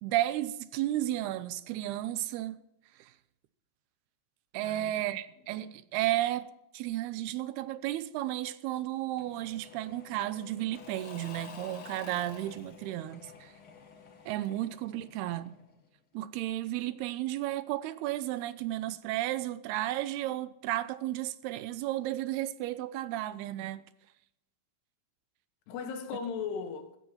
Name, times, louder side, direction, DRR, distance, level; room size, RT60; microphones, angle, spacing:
voice 1, 0.0-2.6 3.0-3.1 4.5-13.5 14.3-15.5 16.1-23.8, right 14 dB, 85° right, 2.7 m, -33 dB
voice 2, 4.6-5.0 5.7-5.8 25.7-27.0, left 6 dB, 90° left, 3.7 m, -37 dB
Engine / Mechanisms / Drill, 9.2-15.8, left 4 dB, 45° left, 1.8 m, -50 dB
16.0 x 14.0 x 4.3 m
omnidirectional pair, 4.6 m